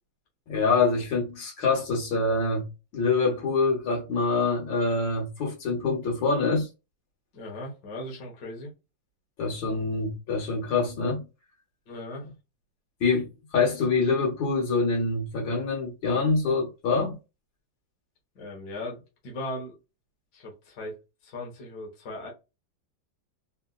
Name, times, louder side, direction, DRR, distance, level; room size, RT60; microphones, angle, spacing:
voice 1, 0.5-2.7 2.9-6.7 9.4-11.2 13.0-17.2, left 4 dB, 80° left, 1.9 m, -25 dB
voice 2, 7.3-8.7 11.9-12.3 18.3-19.8 20.3-22.3, left 1 dB, 60° left, 1.6 m, -38 dB
3.9 x 2.3 x 2.2 m
omnidirectional pair, 2.0 m